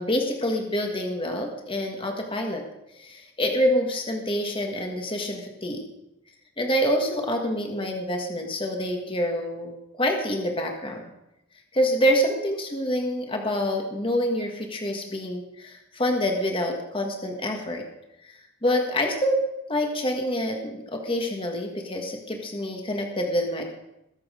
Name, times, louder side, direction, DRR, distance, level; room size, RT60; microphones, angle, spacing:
voice 1, 0.0-2.6 2.9-5.8 6.6-11.0 11.7-17.8 18.3-19.4 19.7-23.6, equal, 25° left, 2 dB, 1.6 m, -26 dB
21.0 x 7.6 x 5.1 m, 0.88 s
head